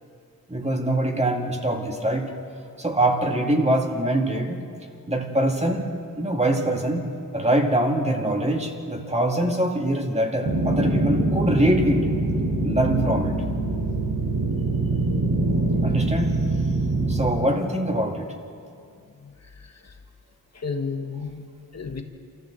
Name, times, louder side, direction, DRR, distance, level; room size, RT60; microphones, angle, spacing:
voice 1, 0.5-2.3 2.8-4.6 5.1-7.1 7.3-12.1 12.6-13.4 15.8-16.4 17.1-18.3, right 1 dB, 20° right, 2 dB, 2.2 m, -23 dB
sound 1, 10.4-17.3, right 2 dB, 70° right, 5.5 m, -24 dB
voice 2, 19.2-19.9 20.5-22.0, left 4 dB, 50° left, 4 dB, 1.6 m, -33 dB
26.5 x 14.0 x 7.7 m, 2.4 s
wide cardioid pair, 100°, 33 cm